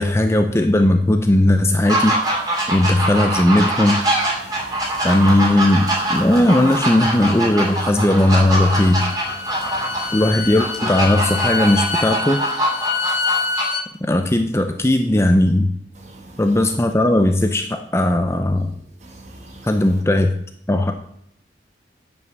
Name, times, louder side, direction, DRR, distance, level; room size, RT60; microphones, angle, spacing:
voice 1, 0.0-2.2 2.7-4.0 5.0-9.0 10.1-12.4 14.0-15.7 16.4-18.7 19.6-20.3 20.7-20.9, left 1 dB, 15° left, 0.5 m, -17 dB
sound 1, 1.8-13.6, right 1 dB, 20° right, 2.4 m, -23 dB
voice 2, 2.8-3.1 4.4-5.4 5.8-6.7 9.0-10.6 16.0-16.8 19.0-20.0, right 2 dB, 40° right, 1.6 m, -42 dB
Bowed string instrument, 8.5-13.9, left 4 dB, 65° left, 1.0 m, -26 dB
9.6 x 5.6 x 6.4 m
head